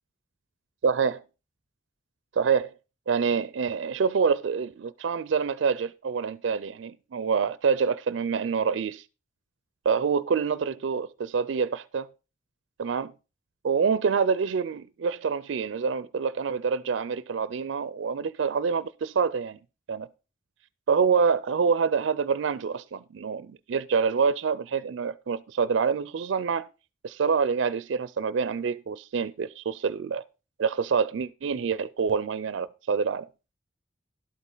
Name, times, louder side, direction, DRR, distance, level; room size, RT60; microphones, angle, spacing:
voice 1, 0.8-1.2 2.4-2.7 3.1-9.0 9.9-12.1 12.8-13.1 13.6-19.6 19.9-20.1 20.9-26.7 27.0-30.2 30.6-33.3, right 5 dB, 75° right, 0.4 m, -26 dB
11.5 x 8.1 x 3.9 m
head